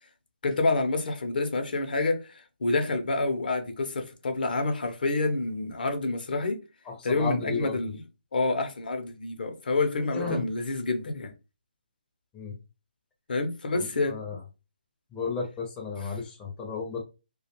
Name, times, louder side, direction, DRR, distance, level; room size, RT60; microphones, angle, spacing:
voice 1, 0.4-6.6 7.0-8.0 8.3-11.3 13.3-14.2, left 3 dB, 65° left, 0.6 m, -28 dB
voice 2, 7.1-7.8 9.9-10.4 12.3-12.5 13.7-14.4 15.1-17.0, left 4 dB, 10° left, 0.5 m, -33 dB
2.3 x 2.2 x 2.8 m
figure-of-eight pair, 150°, 5 cm